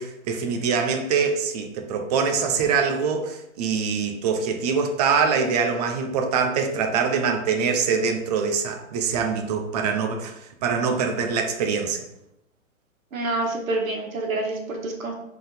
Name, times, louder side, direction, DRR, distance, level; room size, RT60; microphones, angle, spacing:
voice 1, 0.0-10.3 10.6-12.0, right 5 dB, 30° right, 4 dB, 0.8 m, -24 dB
voice 2, 13.1-15.1, right 2 dB, 75° right, 1 dB, 2.0 m, -27 dB
5.1 x 4.0 x 5.1 m, 0.83 s
hypercardioid pair, 150°, 42 cm